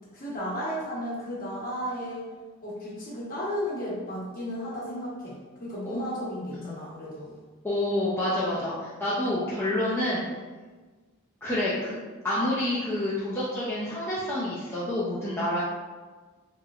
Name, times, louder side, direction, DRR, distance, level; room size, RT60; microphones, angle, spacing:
voice 1, 0.1-2.2 2.6-7.4, equal, 40° left, -6 dB, 0.9 m, -34 dB
voice 2, 7.6-10.3 11.4-12.0 12.2-15.6, left 1 dB, 10° left, -9 dB, 0.4 m, -28 dB
3.1 x 2.9 x 2.3 m, 1.3 s
head